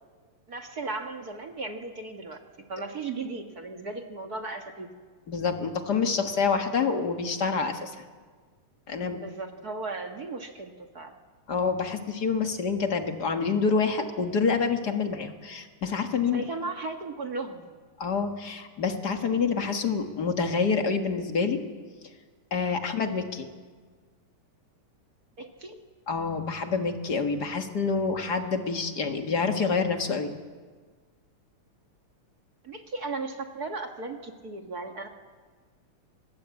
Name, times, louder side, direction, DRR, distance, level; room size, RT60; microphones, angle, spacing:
voice 1, 0.5-2.4 2.7-4.9 9.0-11.1 16.3-17.7 25.4-25.8 32.6-35.1, right 3 dB, 40° right, 4 dB, 1.4 m, -36 dB
voice 2, 5.3-8.0 8.9-9.2 11.5-16.4 18.0-21.6 22.5-23.5 26.1-30.3, left 5 dB, 40° left, 6 dB, 1.6 m, -27 dB
25.5 x 20.5 x 8.4 m, 1.5 s
omnidirectional pair, 3.7 m